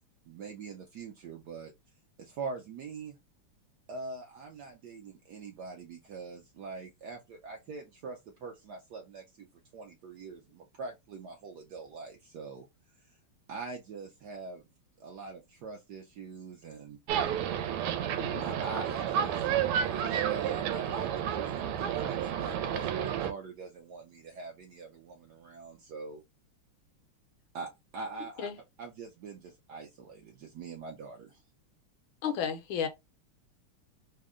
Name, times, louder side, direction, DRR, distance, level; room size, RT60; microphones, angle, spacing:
voice 1, 0.3-1.7 2.2-3.2 3.9-9.5 9.7-12.6 13.0-13.2 13.5-14.7 15.0-17.0 18.4-26.2 27.5-28.5 28.8-31.4, right 4 dB, 75° right, 0.9 m, -43 dB
sound 1, 17.1-23.3, right 9 dB, 90° right, 1.5 m, -31 dB
voice 2, 18.2-18.5 28.4-28.6 32.2-32.9, left 7 dB, 75° left, 1.3 m, -33 dB
3.6 x 2.1 x 3.5 m
omnidirectional pair, 2.4 m